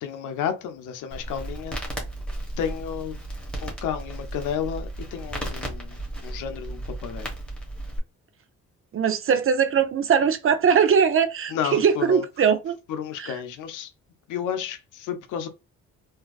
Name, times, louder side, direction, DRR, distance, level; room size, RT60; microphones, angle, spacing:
voice 1, 0.0-1.8 2.6-3.2 3.6-7.3 11.5-12.2 12.9-13.9 14.3-15.5, left 8 dB, 85° left, 0.7 m, -31 dB
Crackle, 1.1-8.0, right 1 dB, 5° left, 1.3 m, -34 dB
voice 2, 8.9-12.8 13.2-13.3, right 7 dB, 45° right, 0.6 m, -21 dB
3.5 x 2.7 x 2.4 m
cardioid pair, 90°, 30 cm